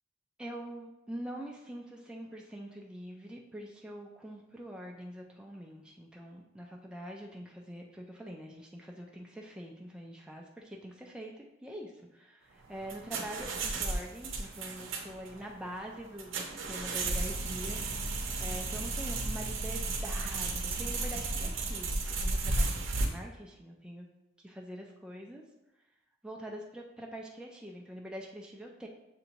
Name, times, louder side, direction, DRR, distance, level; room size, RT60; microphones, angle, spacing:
voice 1, 0.4-24.1 24.4-25.4 26.2-28.9, equal, 5° right, -1 dB, 0.3 m, -44 dB
sound 1, 12.6-23.1, right 2 dB, 80° right, 0.7 m, -34 dB
6.6 x 2.6 x 2.9 m, 0.93 s
head